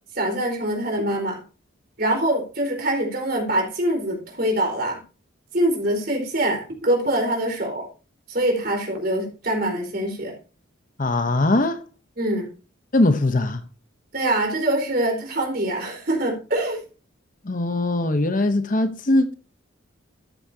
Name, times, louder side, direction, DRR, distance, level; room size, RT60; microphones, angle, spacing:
voice 1, 0.1-1.4 2.0-5.0 5.5-7.9 8.3-10.3 12.2-12.5 14.1-16.8, right 1 dB, 45° right, 4.2 m, -24 dB
voice 2, 11.0-11.8 12.9-13.6 17.4-19.3, left 2 dB, 40° left, 0.8 m, -21 dB
13.5 x 8.3 x 2.8 m
head